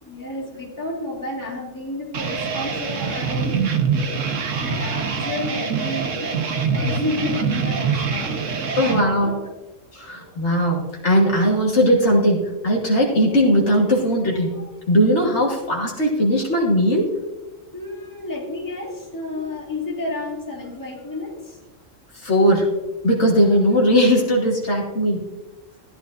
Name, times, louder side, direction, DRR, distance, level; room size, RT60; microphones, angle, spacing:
voice 1, 0.0-3.7 4.5-6.5 6.7-9.4 17.7-21.6, left 2 dB, 15° left, -2 dB, 2.2 m, -31 dB
sound 1, 2.1-9.0, right 5 dB, 75° right, 1.4 m, -24 dB
voice 2, 8.8-9.4 9.9-14.6 14.9-17.1 22.1-22.7 23.0-25.2, equal, 65° left, -1 dB, 1.8 m, -19 dB
14.0 x 11.0 x 2.6 m, 1.0 s
omnidirectional pair, 1.3 m